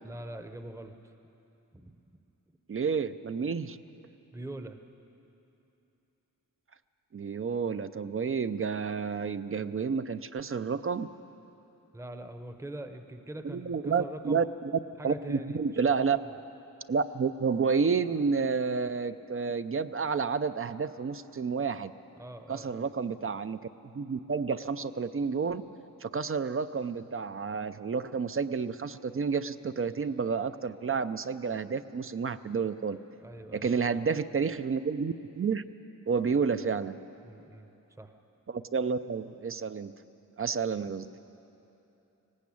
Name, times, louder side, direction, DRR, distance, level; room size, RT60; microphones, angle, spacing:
voice 1, 0.0-1.1 1.7-2.0 4.3-4.8 11.9-14.4 15.0-16.3 22.2-22.9 33.2-34.0 37.2-37.7 38.0-38.1, right 1 dB, 10° right, 7 dB, 0.7 m, -43 dB
voice 2, 2.7-3.8 7.1-11.1 13.4-14.4 15.0-16.2 16.9-21.9 22.5-23.6 23.9-25.6 26.0-33.0 33.5-35.6 36.1-37.0 38.5-39.9 40.4-41.1, right 5 dB, 40° right, 12 dB, 0.5 m, -30 dB
18.5 x 18.0 x 8.5 m, 2.9 s
wide cardioid pair, 160°, 33 cm